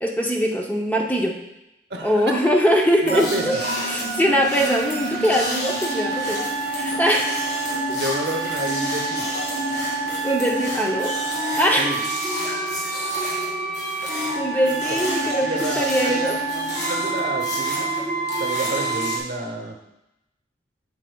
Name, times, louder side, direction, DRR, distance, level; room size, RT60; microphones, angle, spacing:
voice 1, 0.0-1.4 2.0-3.5 3.9-7.4 10.2-11.1 11.6-12.0 14.3-16.4, equal, 10° left, 0 dB, 0.6 m, -22 dB
voice 2, 1.9-2.4 3.0-3.6 7.9-9.3 11.8-12.0 14.9-17.9 18.4-19.8, right 2 dB, 60° right, 4 dB, 0.8 m, -30 dB
sound 1, 3.0-19.2, right 2 dB, 70° left, 2.0 m, -26 dB
8.1 x 7.2 x 2.3 m, 0.89 s
head